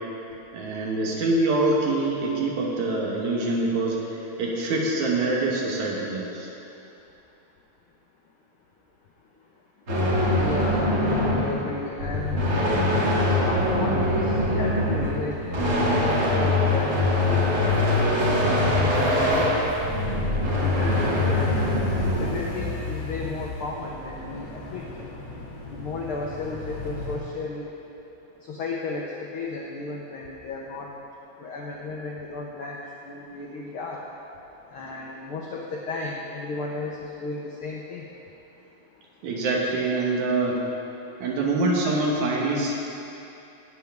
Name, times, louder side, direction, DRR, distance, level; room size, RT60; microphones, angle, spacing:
voice 1, 0.5-4.0 4.4-6.5 39.2-40.6 41.2-42.7, right 2 dB, 75° right, -2 dB, 2.7 m, -25 dB
sound 1, 9.9-22.3, left 1 dB, 45° right, 2.8 m, -23 dB
voice 2, 10.4-12.4 13.3-17.6 18.7-19.1 20.6-21.4 22.2-25.2 25.7-27.7 28.4-30.9 31.4-32.8 33.0-34.0 34.7-38.0, left 3 dB, 85° left, -2 dB, 1.1 m, -34 dB
sound 2, 12.1-27.2, left 2 dB, 55° left, 1.1 m, -37 dB
17.0 x 7.1 x 3.5 m, 2.9 s
omnidirectional pair, 3.5 m